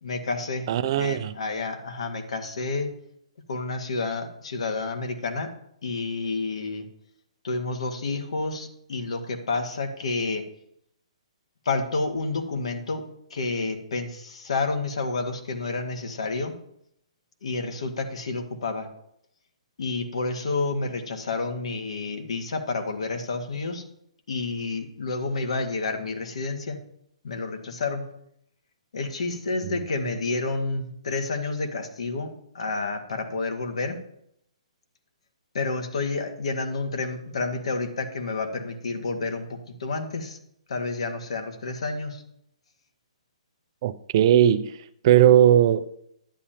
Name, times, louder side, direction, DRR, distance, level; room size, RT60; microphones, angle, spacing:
voice 1, 0.0-2.9 3.5-5.5 5.8-6.9 7.4-10.4 11.6-16.5 17.4-18.9 19.8-23.9 24.3-26.8 27.2-28.1 28.9-34.0 35.5-40.4 40.7-42.2, left 3 dB, 60° left, 1.6 m, -30 dB
voice 2, 0.7-1.3 29.6-29.8 43.8-44.7 45.0-45.9, right 11 dB, 45° right, 0.5 m, -18 dB
11.0 x 9.8 x 2.9 m
figure-of-eight pair, 125°, 3 cm